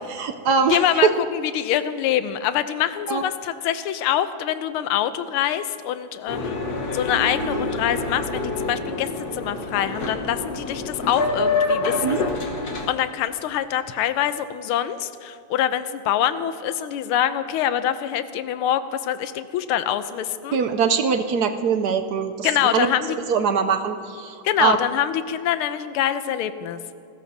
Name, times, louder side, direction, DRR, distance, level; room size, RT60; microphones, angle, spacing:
voice 1, 0.1-1.1 3.1-3.2 12.0-12.2 20.5-22.9 23.3-24.8, right 6 dB, 70° right, 7 dB, 0.9 m, -22 dB
voice 2, 0.7-6.6 6.9-12.2 12.9-20.6 22.4-23.2 24.4-26.8, left 11 dB, 85° left, 11 dB, 1.6 m, -25 dB
Boat Water vehicle, 6.3-12.9, left 3 dB, 50° left, 1.6 m, -27 dB
27.5 x 14.5 x 2.7 m, 2.6 s
omnidirectional pair, 2.3 m